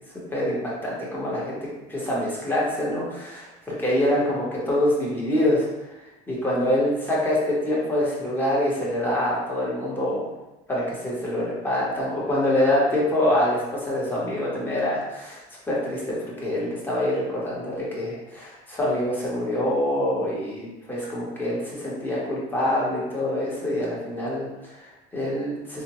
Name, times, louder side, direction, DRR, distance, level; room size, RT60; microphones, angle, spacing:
voice 1, 0.3-5.7 6.3-10.3 10.7-15.4 15.7-25.8, left 1 dB, 10° left, -6 dB, 1.1 m, -25 dB
4.9 x 2.2 x 2.9 m, 1.0 s
cardioid pair, 145°, 17 cm